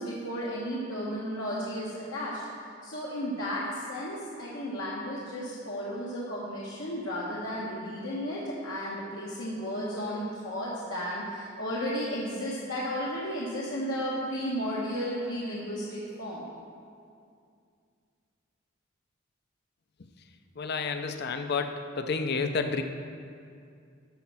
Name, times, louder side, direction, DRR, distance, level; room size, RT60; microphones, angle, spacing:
voice 1, 0.0-2.4 2.8-16.4, equal, 75° left, -6 dB, 1.2 m, -33 dB
voice 2, 20.6-22.8, left 4 dB, 55° left, 7 dB, 0.6 m, -30 dB
12.5 x 4.3 x 6.1 m, 2.3 s
head